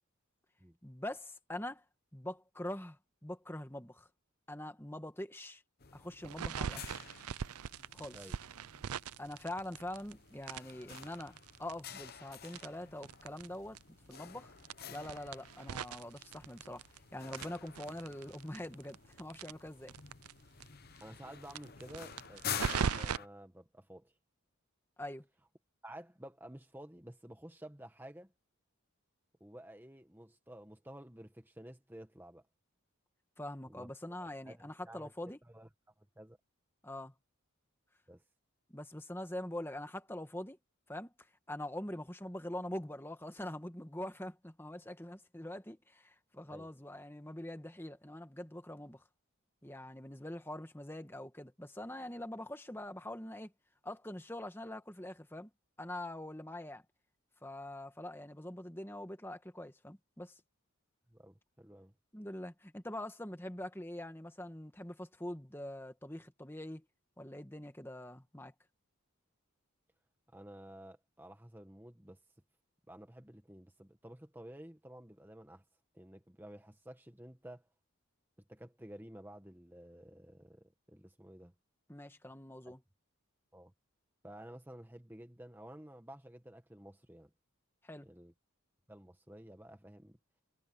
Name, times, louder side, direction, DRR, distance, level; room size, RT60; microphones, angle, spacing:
voice 1, 0.8-1.8 2.1-4.1 4.5-5.6 5.9-6.9 7.9-8.2 9.2-13.8 14.1-14.5 14.9-16.8 17.1-19.9 25.0-25.3 33.4-35.4 36.8-37.1 38.7-40.6 40.9-41.1 41.5-49.0 49.6-53.5 53.8-55.5 55.8-56.8 57.4-60.4 62.1-66.8 67.2-68.5 81.9-82.8 87.8-88.1, left 1 dB, 10° left, 1.6 m, -44 dB
sound 1, 5.8-23.3, left 8 dB, 45° left, 0.9 m, -49 dB
sound 2, 6.2-10.1 10.4-13.5 13.8-13.9 14.1-14.2 14.6-17.0 17.3-20.3 20.6-20.7 21.0-21.1 21.5-23.2, right 7 dB, 85° right, 0.5 m, -40 dB
voice 2, 21.0-24.1 25.8-28.3 29.4-32.4 33.7-33.9 34.2-35.1 35.5-35.7 36.0-36.4 38.1-38.2 46.5-46.7 61.1-61.9 70.3-72.2 72.9-75.6 75.9-77.7 78.5-81.5 82.6-82.8 83.5-83.7 84.2-87.3 88.0-88.3 88.9-90.2, right 1 dB, 10° right, 1.4 m, -52 dB
head